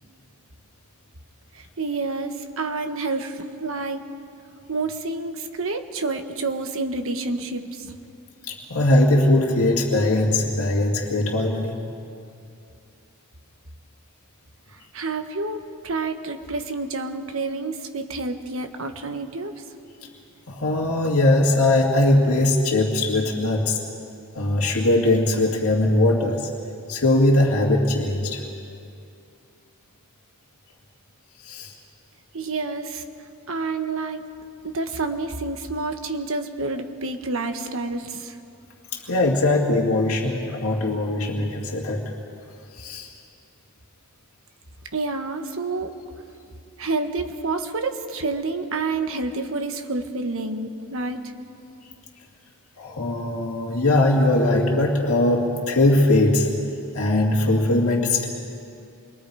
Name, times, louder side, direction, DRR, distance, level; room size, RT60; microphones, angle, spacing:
voice 1, 1.5-4.0 4.7-8.0 14.9-19.5 32.3-33.0 33.5-34.2 34.6-38.4 44.9-45.9 46.8-51.2, right 3 dB, 65° right, 6 dB, 1.4 m, -28 dB
voice 2, 8.4-11.8 20.5-23.8 24.3-26.5 26.9-28.4 31.4-31.7 38.9-42.1 42.7-43.1 52.8-56.5 56.9-58.3, left 2 dB, 80° left, -1 dB, 2.1 m, -20 dB
28.0 x 23.5 x 4.9 m, 2.5 s
head